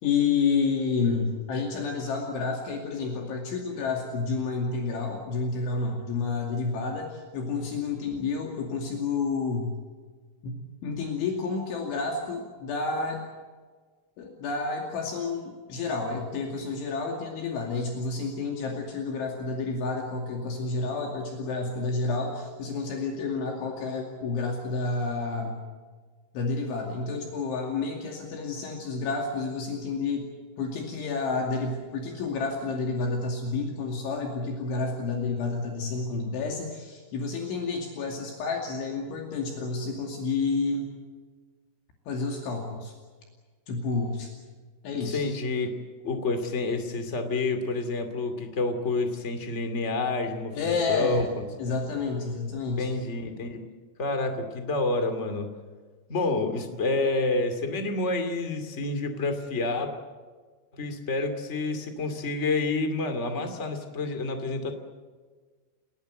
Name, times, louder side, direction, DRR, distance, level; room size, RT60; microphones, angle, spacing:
voice 1, 0.0-9.7 10.4-13.2 14.2-25.6 26.3-30.3 30.6-40.9 42.1-42.9 43.7-44.3 44.8-45.2 50.5-51.3 51.6-52.9, left 4 dB, 70° left, 1 dB, 4.8 m, -30 dB
voice 2, 45.1-45.8 46.0-51.4 52.8-53.6 54.0-55.5 56.1-60.0 60.7-64.7, left 3 dB, 35° left, 7 dB, 1.0 m, -28 dB
29.5 x 18.0 x 7.9 m, 1.5 s
omnidirectional pair, 5.8 m